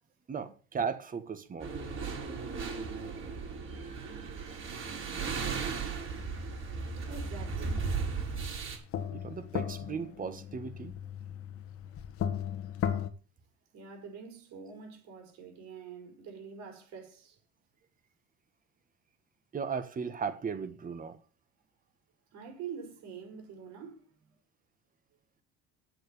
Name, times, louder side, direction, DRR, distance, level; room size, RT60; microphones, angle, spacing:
voice 1, 0.3-1.7 9.1-10.9 19.5-21.2, right 6 dB, 30° right, 1.5 m, -36 dB
sound 1, 1.6-8.8, right 5 dB, 45° right, 5.2 m, -36 dB
voice 2, 7.1-7.8 13.7-17.4 22.3-24.1, right 6 dB, 65° right, 5.3 m, -45 dB
sound 2, 7.8-7.9 8.3-13.1, left 9 dB, 50° left, 1.4 m, -36 dB
8.8 x 7.8 x 6.9 m
cardioid pair, 120°, 29 cm